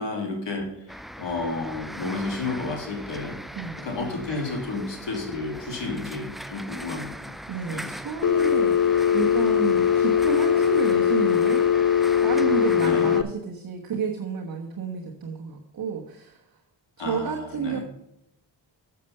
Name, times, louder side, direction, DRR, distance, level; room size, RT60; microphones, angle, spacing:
voice 1, 0.0-3.4 3.8-7.3 7.7-7.9 12.8-13.2 17.0-17.8, left 3 dB, 65° left, 1 dB, 2.8 m, -31 dB
sound 1, 0.9-13.2, equal, ahead, 0.3 m, -39 dB
voice 2, 3.5-3.9 7.5-8.8 9.1-11.7 12.2-16.4 17.0-17.8, right 6 dB, 50° right, -1 dB, 1.3 m, -30 dB
Telephone, 8.2-13.2, left 8 dB, 45° left, 0.6 m, -21 dB
7.3 x 6.8 x 5.6 m, 0.79 s
cardioid pair, 65°, 46 cm